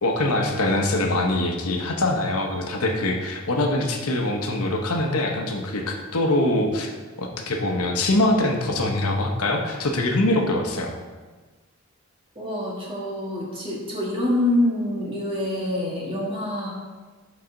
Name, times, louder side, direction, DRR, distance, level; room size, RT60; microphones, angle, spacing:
voice 1, 0.0-6.9 7.2-10.9, left 1 dB, 85° left, 2 dB, 1.0 m, -23 dB
voice 2, 12.3-16.7, left 1 dB, 25° right, -4 dB, 1.8 m, -26 dB
11.5 x 4.2 x 3.8 m, 1.3 s
head